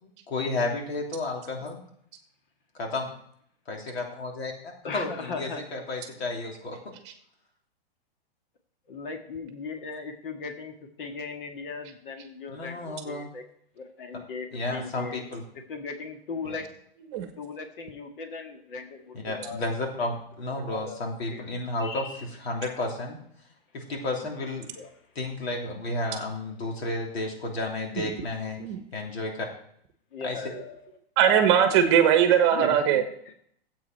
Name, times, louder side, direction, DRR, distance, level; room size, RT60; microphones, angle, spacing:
voice 1, 0.0-1.8 2.8-3.1 3.7-6.8 12.5-13.3 14.5-15.4 16.4-16.6 19.1-23.2 23.7-24.7 25.1-28.6 28.9-29.5 30.2-30.4, left 2 dB, 85° left, 0 dB, 3.2 m, -32 dB
voice 2, 4.8-5.6 8.9-13.4 13.8-15.2 15.7-16.6 17.4-19.6 20.0-20.1 20.4-21.4 21.8-22.3 24.7-24.9 30.1-30.8 32.4-33.3, left 4 dB, 60° left, 4 dB, 1.8 m, -38 dB
voice 3, 31.2-33.0, right 9 dB, 30° right, 7 dB, 1.2 m, -20 dB
13.5 x 8.3 x 4.6 m, 0.67 s
hypercardioid pair, 175°, 31 cm